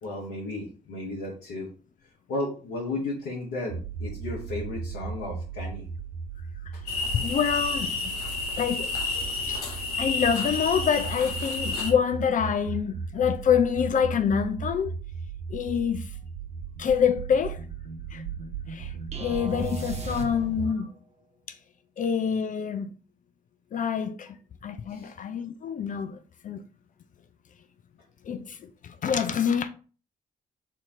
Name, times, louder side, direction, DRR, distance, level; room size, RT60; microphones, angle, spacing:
voice 1, 0.0-1.7 2.3-5.9 6.7-6.8 24.9-25.1, left 2 dB, 70° left, 1.1 m, -34 dB
sound 1, 3.7-20.7, right 5 dB, 75° right, 0.5 m, -37 dB
sound 2, 6.8-11.9, left 3 dB, 85° left, 0.7 m, -30 dB
voice 2, 7.0-8.1 8.6-8.9 9.5-9.6 10.0-14.9 15.5-16.1 16.8-17.6 18.1-18.2 18.7-18.9 19.2-20.9 21.5-21.6 22.0-22.9 23.7-24.3 24.6-26.2 26.4-26.6 28.2-29.7, left 7 dB, 45° left, 0.5 m, -26 dB
sound 3, 19.1-20.8, right 3 dB, 35° right, 1.0 m, -37 dB
4.3 x 2.8 x 3.6 m
hypercardioid pair, 40°, 19 cm